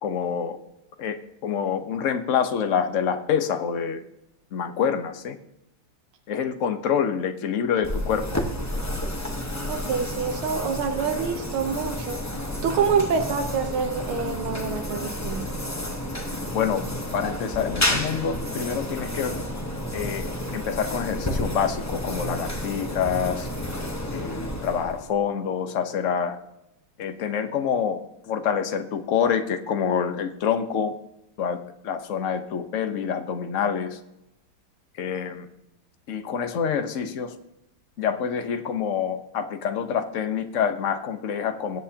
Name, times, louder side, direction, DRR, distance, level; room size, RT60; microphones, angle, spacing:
voice 1, 0.0-0.6 1.0-4.0 4.5-5.4 6.3-8.3 16.5-16.9 17.1-19.4 19.9-23.5 24.1-26.4 27.0-28.0 28.3-31.0 31.4-34.0 35.0-35.5 36.1-37.4 38.0-41.8, left 7 dB, 50° left, 7 dB, 1.1 m, -26 dB
sound 1, 7.8-25.2, left 1 dB, 20° left, 0.4 m, -31 dB
voice 2, 9.7-12.2 12.6-15.5, right 6 dB, 75° right, 4 dB, 1.8 m, -26 dB
23.5 x 8.1 x 2.9 m, 0.85 s
omnidirectional pair, 2.4 m